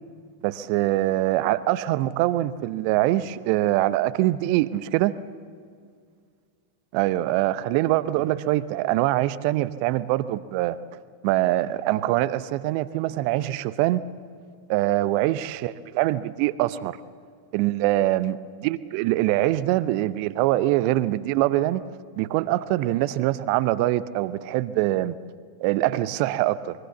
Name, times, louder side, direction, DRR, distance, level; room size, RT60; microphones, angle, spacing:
voice 1, 0.4-5.1 6.9-10.8 11.2-14.0 14.7-17.0 17.5-21.8 22.2-25.1 25.6-26.7, right 15 dB, 45° right, 16 dB, 0.8 m, -23 dB
24.0 x 22.5 x 7.2 m, 2.1 s
figure-of-eight pair, 90°, 0 cm